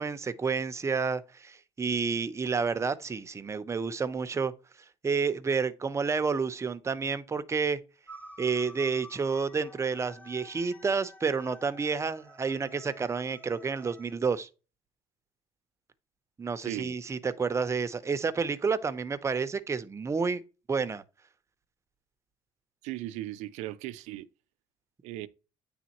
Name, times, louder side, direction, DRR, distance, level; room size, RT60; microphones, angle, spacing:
voice 1, 0.0-4.5 5.0-7.8 8.4-14.5 16.4-20.4 20.7-21.0, right 5 dB, 25° right, 0.7 m, -30 dB
sound 1, 8.1-14.1, left 1 dB, 15° left, 1.1 m, -51 dB
voice 2, 16.6-16.9 22.8-24.3 25.0-25.3, right 15 dB, 90° right, 0.5 m, -37 dB
9.5 x 3.6 x 3.0 m
cardioid pair, 105°, 12 cm